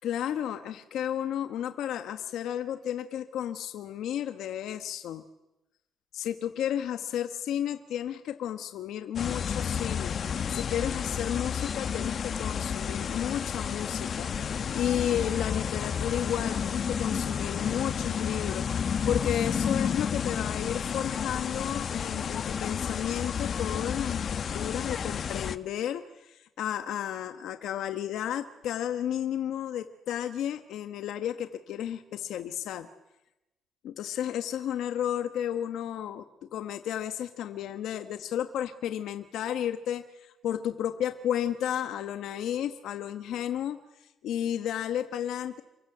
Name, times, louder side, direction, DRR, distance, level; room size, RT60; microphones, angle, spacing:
voice 1, 0.0-5.2 6.1-32.9 33.8-45.6, left 10 dB, 80° left, 8 dB, 1.3 m, -33 dB
sound 1, 9.2-25.6, left 7 dB, 55° left, 1.2 m, -31 dB
28.0 x 23.5 x 8.0 m, 0.96 s
cardioid pair, 90°, 0 cm